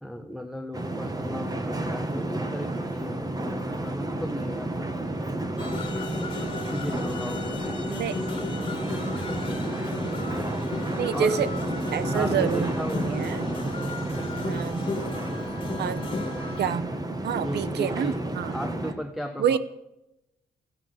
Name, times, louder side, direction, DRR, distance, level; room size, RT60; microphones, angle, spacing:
voice 1, 0.0-5.1 6.7-8.5 8.9-9.2 11.1-11.4 12.1-13.3 15.2-15.6 17.4-19.6, equal, ahead, 5 dB, 1.1 m, -36 dB
sound 1, 0.7-18.9, right 1 dB, 20° right, 1.9 m, -31 dB
sound 2, 5.6-16.7, left 3 dB, 30° left, 2.1 m, -35 dB
voice 2, 11.0-11.5 11.9-12.7 13.0-13.5 14.4-14.8 15.8-16.0 16.6-16.9 17.2-18.5 19.4-19.6, right 8 dB, 85° right, 15 dB, 1.0 m, -27 dB
15.0 x 10.0 x 8.2 m, 0.89 s
cardioid pair, 125°, 17 cm